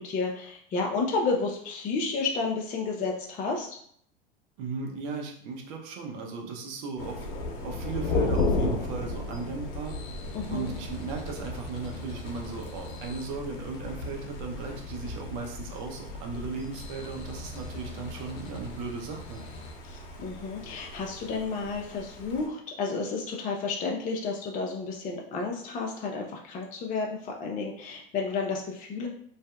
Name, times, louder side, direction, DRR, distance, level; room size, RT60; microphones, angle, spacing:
voice 1, 0.0-3.8 10.3-10.7 19.8-29.1, left 4 dB, 25° left, 1 dB, 0.4 m, -31 dB
voice 2, 4.6-7.3 7.6-9.9 10.5-19.4, right 4 dB, 60° right, 1 dB, 0.7 m, -36 dB
Thunder, 7.0-22.5, left 2 dB, 55° left, 0.7 m, -35 dB
sound 1, 8.2-19.7, left 2 dB, 90° left, 0.6 m, -45 dB
2.6 x 2.4 x 2.3 m, 0.63 s
hypercardioid pair, 95°, 29 cm